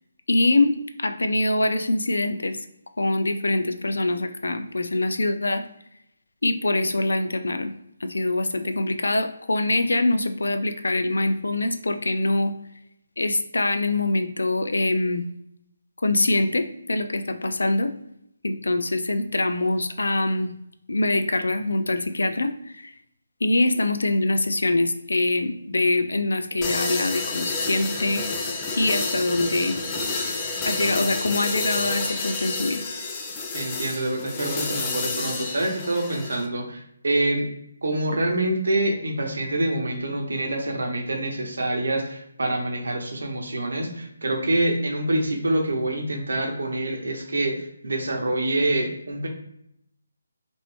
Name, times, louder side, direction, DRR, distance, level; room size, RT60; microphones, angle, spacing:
voice 1, 0.3-2.6 3.0-5.6 6.4-7.7 8.0-12.5 13.2-15.2 16.0-17.9 18.4-20.5 20.9-22.9 23.4-28.2 28.8-29.8 30.6-32.8, left 2 dB, 80° left, 8 dB, 0.4 m, -24 dB
sound 1, 26.6-36.5, left 3 dB, 20° left, 0.5 m, -29 dB
voice 2, 33.5-37.5 37.8-49.3, right 1 dB, 75° right, 2 dB, 0.9 m, -26 dB
2.9 x 2.6 x 3.2 m, 0.75 s
figure-of-eight pair, 155°, 0 cm